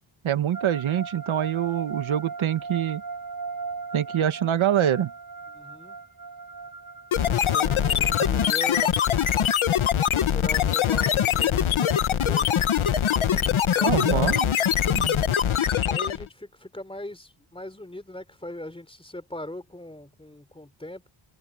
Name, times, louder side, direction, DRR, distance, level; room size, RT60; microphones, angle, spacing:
voice 1, 0.2-3.0 3.9-5.1 13.8-14.5 14.9-15.1, right 10 dB, 80° right, 1.2 m, -25 dB
sound 1, 0.5-8.9, right 4 dB, 45° right, 3.8 m, -38 dB
voice 2, 5.5-6.0 7.2-8.9 10.1-12.5 13.2-14.4 15.9-21.1, left 1 dB, 10° left, 3.4 m, -40 dB
sound 2, 7.1-16.3, left 9 dB, 85° left, 1.4 m, -23 dB
wide cardioid pair, 115°, 47 cm